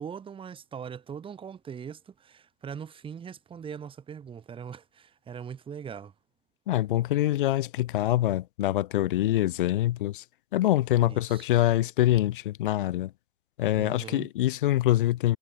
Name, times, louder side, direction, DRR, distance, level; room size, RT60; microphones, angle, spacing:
voice 1, 0.0-6.1 11.0-11.4 13.7-14.3, right 7 dB, 15° right, 3.6 m, -41 dB
voice 2, 6.7-10.2 10.5-13.1 13.6-15.4, left 14 dB, 55° left, 0.6 m, -25 dB
figure-of-eight pair, 110°, 32 cm